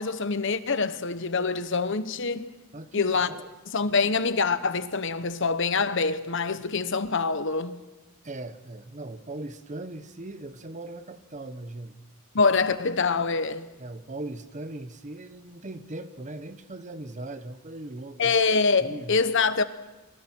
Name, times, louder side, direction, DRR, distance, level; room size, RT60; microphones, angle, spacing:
voice 1, 0.0-2.5 2.9-3.3 3.7-7.8 12.3-13.7 18.2-19.6, left 4 dB, 60° left, 1.1 m, -25 dB
voice 2, 2.7-3.5 8.2-11.9 13.8-18.4 18.8-19.2, right 2 dB, 35° right, 1.1 m, -39 dB
27.5 x 24.5 x 4.6 m
head